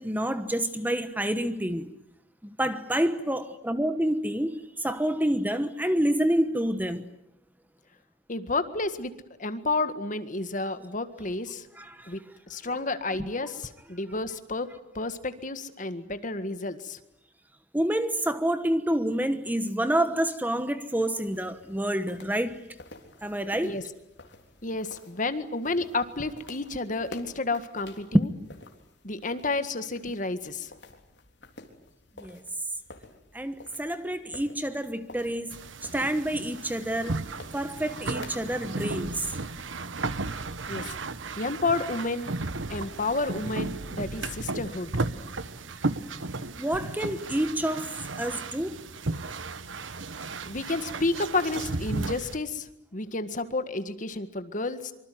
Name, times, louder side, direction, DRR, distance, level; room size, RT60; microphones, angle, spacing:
voice 1, 0.0-1.9 2.4-7.1 11.8-12.1 17.7-22.6 23.2-23.8 32.2-32.4 33.3-37.2 37.5-39.3 46.6-48.8, right 1 dB, 10° right, 1.1 m, -28 dB
voice 2, 8.3-9.1 9.4-11.7 12.1-12.2 12.5-14.7 14.9-17.0 23.6-23.8 24.6-28.3 29.0-30.7 40.7-41.0 41.4-42.3 42.7-44.9 50.5-54.9, left 3 dB, 40° left, 1.8 m, -31 dB
sound 1, 21.0-40.0, left 2 dB, 65° left, 3.7 m, -51 dB
sound 2, 35.5-52.4, right 3 dB, 85° right, 1.2 m, -34 dB
25.0 x 25.0 x 9.4 m
head